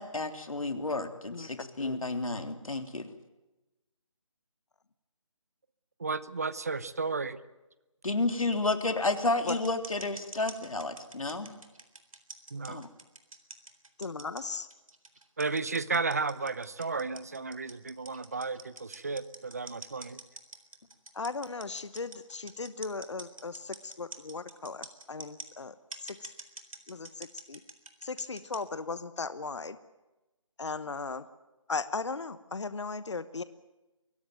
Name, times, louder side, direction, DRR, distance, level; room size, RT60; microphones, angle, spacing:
voice 1, 0.0-3.1 8.0-11.6 12.7-12.9, left 2 dB, 85° left, 7 dB, 3.4 m, -31 dB
voice 2, 1.3-2.0 9.5-9.6 14.0-14.7 21.1-25.7 26.0-26.3 26.9-27.6 28.0-29.8 30.6-31.3 31.7-33.4, left 4 dB, 60° left, 14 dB, 1.1 m, -37 dB
voice 3, 6.0-7.4 12.5-12.9 15.4-20.2, right 4 dB, 30° right, 17 dB, 0.8 m, -33 dB
sound 1, 9.5-25.5 25.9-28.6, right 3 dB, 90° right, 3.9 m, -45 dB
23.5 x 17.5 x 9.1 m, 1.1 s
figure-of-eight pair, 175°, 17 cm